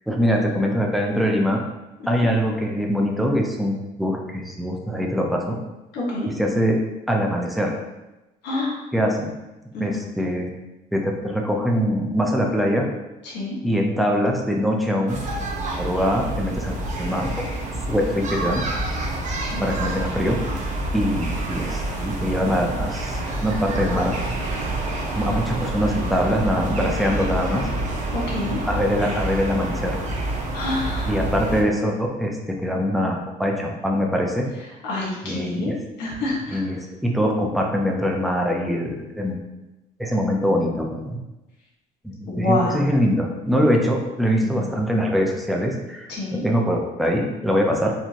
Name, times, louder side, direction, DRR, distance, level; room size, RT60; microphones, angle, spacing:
voice 1, 0.1-1.6 2.1-3.7 4.0-5.6 6.3-6.8 7.1-7.7 8.9-9.3 9.8-10.5 10.9-12.9 13.6-15.2 15.7-17.5 17.9-18.7 19.6-20.4 20.9-24.2 25.1-27.7 28.7-30.0 31.1-34.5 35.2-35.8 36.5-39.4 40.0-41.2 42.0-47.9, equal, ahead, 0 dB, 0.6 m, -23 dB
voice 2, 5.9-6.3 8.4-8.8 9.7-10.0 13.2-13.6 19.4-19.7 28.1-28.6 30.5-31.1 34.8-35.7 36.0-36.6 42.3-42.9 44.6-44.7 46.1-46.4, left 2 dB, 80° left, -4 dB, 1.5 m, -27 dB
Children playing outdoors, 15.1-31.6, right 2 dB, 45° right, 0.8 m, -28 dB
4.3 x 2.7 x 2.9 m, 1.0 s
cardioid pair, 110°, 17 cm